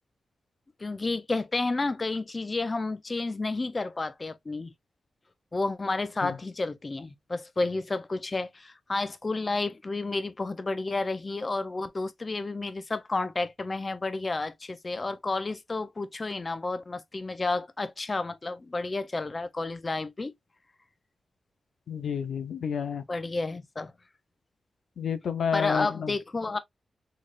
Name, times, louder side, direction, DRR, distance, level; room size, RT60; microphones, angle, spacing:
voice 1, 0.8-4.7 5.5-20.3 23.1-23.9 25.5-26.6, left 3 dB, 30° left, 0.4 m, -31 dB
voice 2, 21.9-23.0 25.0-26.1, left 7 dB, 85° left, 0.6 m, -30 dB
4.0 x 3.2 x 2.4 m
wide cardioid pair, 130°, 0 cm